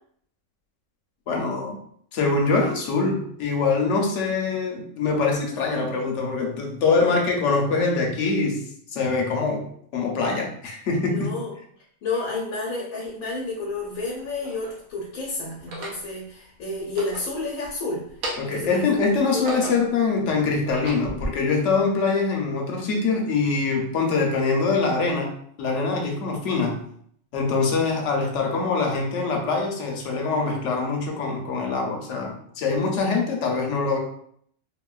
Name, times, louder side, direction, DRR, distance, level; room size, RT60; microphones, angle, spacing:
voice 1, 1.3-1.8 2.1-8.6 8.9-9.6 9.9-11.3 18.4-25.3 25.6-26.8 27.3-34.0, left 4 dB, 65° left, 1 dB, 0.9 m, -24 dB
voice 2, 11.0-11.5 12.0-18.1 18.4-18.9 19.3-19.8, left 3 dB, 90° left, -3 dB, 1.1 m, -30 dB
sound 1, 13.0-13.1 14.0-14.8 15.5-16.1 16.8-17.7 18.1-18.7 19.1-20.0 20.5-21.3, right 1 dB, 90° right, 1.2 m, -35 dB
3.7 x 2.1 x 2.3 m, 0.65 s
omnidirectional pair, 1.4 m